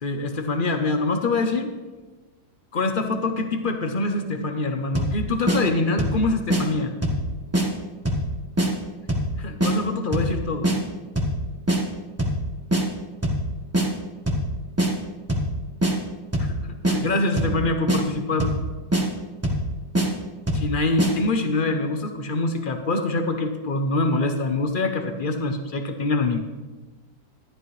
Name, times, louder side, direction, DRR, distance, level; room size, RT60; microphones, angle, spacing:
voice 1, 0.0-1.7 2.7-6.9 9.4-10.7 16.4-18.5 20.5-26.4, left 3 dB, 45° left, 6 dB, 0.6 m, -25 dB
sound 1, 4.9-5.2 5.5-5.6 6.0-6.2 6.5-6.6 7.0-7.2 7.5-7.7 8.1-8.3 8.6-8.7 9.1-9.3 9.6-9.7 10.1-10.3 10.6-10.8 11.2-11.4 11.7-11.8 12.2-12.4 12.7-12.8 13.2-13.4 13.7-13.9 14.3-14.5 14.8-14.9 15.3-15.5 15.8-15.9 16.3-16.6 16.8-17.0 17.4-17.6 17.9-18.0 18.4-18.6 18.9-19.0 19.4-19.7 19.9-20.1 20.5-20.7 21.0-21.1, right 1 dB, 10° right, 1.2 m, -22 dB
12.5 x 11.0 x 3.2 m, 1.2 s
omnidirectional pair, 1.9 m